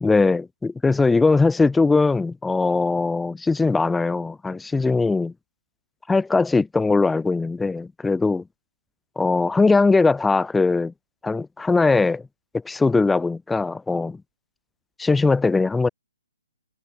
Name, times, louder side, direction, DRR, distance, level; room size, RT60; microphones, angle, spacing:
voice 1, 0.0-5.3 6.1-8.4 9.2-10.9 11.2-12.2 12.6-14.2 15.0-15.9, left 3 dB, 5° left, 0.8 m, -20 dB
figure-of-eight pair, 135°, 0 cm